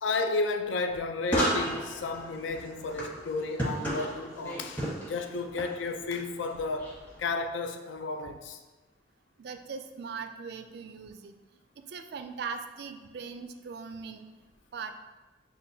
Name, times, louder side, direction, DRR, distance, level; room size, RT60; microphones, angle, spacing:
voice 1, 0.0-8.6, left 3 dB, 80° left, 0.4 m, -32 dB
sound 1, 1.2-7.2, right 1 dB, 10° left, 1.0 m, -34 dB
voice 2, 9.4-11.4 11.9-14.3 14.7-14.9, right 5 dB, 60° right, 0.3 m, -40 dB
7.0 x 2.5 x 2.6 m
head